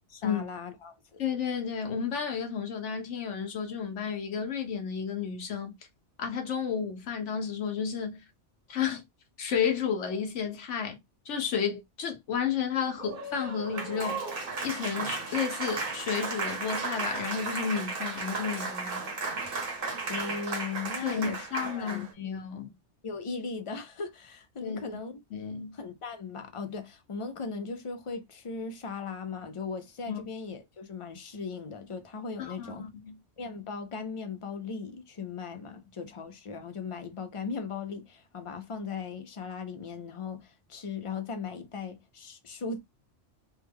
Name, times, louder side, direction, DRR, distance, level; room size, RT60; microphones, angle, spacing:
voice 1, 0.1-1.2 20.1-21.5 21.7-22.3 23.0-25.2 25.7-32.9 33.4-42.8, left 5 dB, 45° left, 0.4 m, -38 dB
voice 2, 1.2-5.7 6.2-8.2 8.7-9.0 9.4-11.0 11.3-14.3 14.6-19.1 21.0-22.7 24.6-25.0 25.3-25.8 30.1-30.3 32.4-33.2, left 7 dB, 80° left, 1.2 m, -32 dB
Applause, 12.9-22.1, right 3 dB, 50° right, 1.1 m, -34 dB
3.2 x 2.2 x 3.4 m
omnidirectional pair, 1.2 m